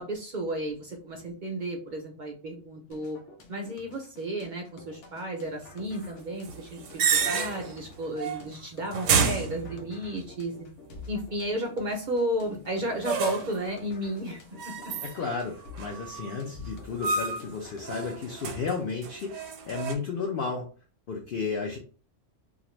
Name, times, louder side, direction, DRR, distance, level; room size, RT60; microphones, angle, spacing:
voice 1, 0.0-3.2 3.5-10.7 11.1-14.9, right 1 dB, 55° right, 2 dB, 0.6 m, -33 dB
sound 1, 2.9-18.9, left 3 dB, 80° left, 1.0 m, -49 dB
sound 2, 6.4-7.8 8.2-8.6 8.9-10.2 13.0-13.6 14.6-15.4 15.8-16.4 17.0-17.5 17.8-19.9, right 6 dB, 85° right, 0.9 m, -29 dB
voice 2, 15.1-20.7 21.1-21.8, left 5 dB, 55° left, -1 dB, 0.7 m, -33 dB
2.5 x 2.5 x 3.0 m, 0.38 s
omnidirectional pair, 1.2 m